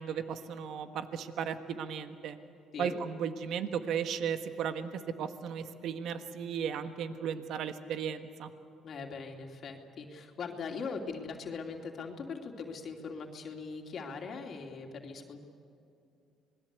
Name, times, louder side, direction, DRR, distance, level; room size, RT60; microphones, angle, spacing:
voice 1, 0.0-2.4 2.8-8.5, right 7 dB, 70° right, 8 dB, 1.5 m, -35 dB
voice 2, 8.8-15.4, left 5 dB, 55° left, 3 dB, 2.7 m, -41 dB
26.5 x 20.5 x 8.2 m, 2.6 s
cardioid pair, 85°, 0 cm